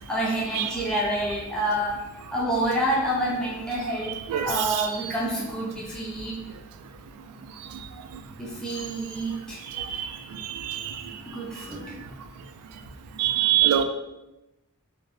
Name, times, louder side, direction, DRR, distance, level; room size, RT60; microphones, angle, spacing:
voice 1, 0.1-2.0 2.3-4.2 4.4-6.4 8.4-9.6 11.3-11.9, right 1 dB, 5° left, -5 dB, 0.4 m, -28 dB
voice 2, 4.3-4.9 9.8-10.1 10.6-10.9 13.2-13.8, right 11 dB, 85° right, 11 dB, 0.3 m, -24 dB
2.6 x 2.0 x 3.2 m, 0.96 s
head